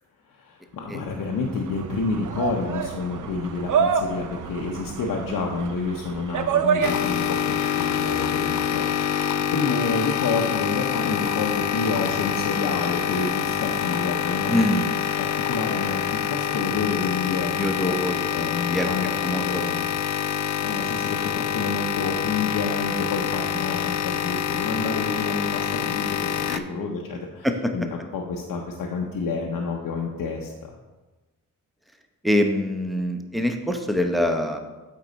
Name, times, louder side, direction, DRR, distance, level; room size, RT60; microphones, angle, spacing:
voice 1, 0.4-9.3 9.5-14.8 15.2-18.0 18.3-19.1 19.4-19.9 20.6-27.5 27.7-30.5, left 4 dB, 85° left, 0 dB, 0.8 m, -29 dB
sound 1, 1.1-7.4, right 7 dB, 65° right, 0.6 m, -28 dB
sound 2, 6.8-26.6, left 9 dB, 55° left, 0.5 m, -26 dB
voice 2, 14.5-14.9 17.5-18.9 19.2-19.6 23.5-23.6 26.5-26.6 27.4-27.9 32.2-34.6, left 1 dB, ahead, 5 dB, 0.8 m, -25 dB
8.3 x 4.6 x 4.0 m, 1.2 s
cardioid pair, 75°, 33 cm